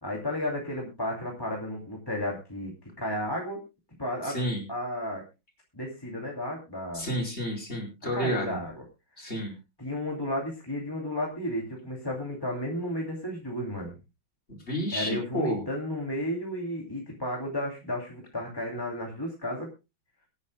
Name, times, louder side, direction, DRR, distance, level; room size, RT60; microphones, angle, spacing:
voice 1, 0.0-3.6 4.0-4.4 4.7-5.2 5.7-7.1 8.1-8.8 9.2-9.3 9.8-13.9 14.9-19.7, left 1 dB, 10° left, -2 dB, 2.6 m, -33 dB
voice 2, 4.2-4.6 6.9-8.6 9.2-9.5 14.5-15.6, equal, 30° left, 1 dB, 4.9 m, -30 dB
24.5 x 9.8 x 2.2 m, 0.26 s
omnidirectional pair, 2.2 m